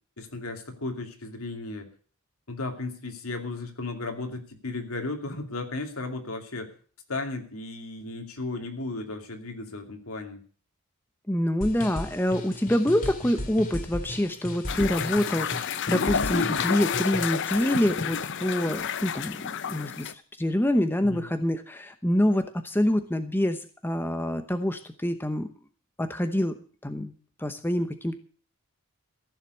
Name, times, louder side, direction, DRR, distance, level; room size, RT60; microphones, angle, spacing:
voice 1, 0.2-1.9 2.5-6.7 7.1-10.4 21.0-21.2, left 2 dB, 70° left, 5 dB, 2.6 m, -35 dB
voice 2, 11.3-25.5 26.0-26.6 26.8-27.1 27.4-28.2, left 1 dB, 10° left, 8 dB, 0.8 m, -26 dB
sound 1, 11.6-17.4, left 1 dB, 40° left, 2.5 m, -36 dB
sound 2, 14.7-20.1, left 7 dB, 55° left, 0.6 m, -30 dB
15.0 x 7.4 x 8.2 m, 0.42 s
head